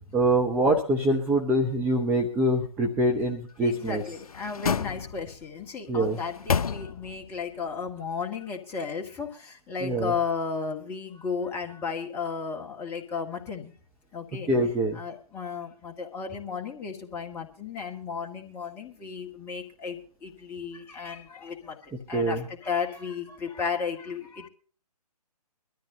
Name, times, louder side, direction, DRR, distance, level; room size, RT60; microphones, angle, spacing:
voice 1, 0.1-4.0 5.9-6.2 9.8-10.1 14.5-15.0 22.1-22.4, right 1 dB, 5° right, 1 dB, 0.8 m, -24 dB
voice 2, 3.6-9.3 9.7-13.7 14.1-14.5 14.9-21.7 22.1-24.5, left 5 dB, 10° left, 1 dB, 1.7 m, -34 dB
sound 1, 3.8-5.5 6.0-7.3 7.7-7.8, left 6 dB, 65° left, 0.6 m, -31 dB
23.0 x 13.0 x 2.8 m, 0.42 s
figure-of-eight pair, 145°, 20 cm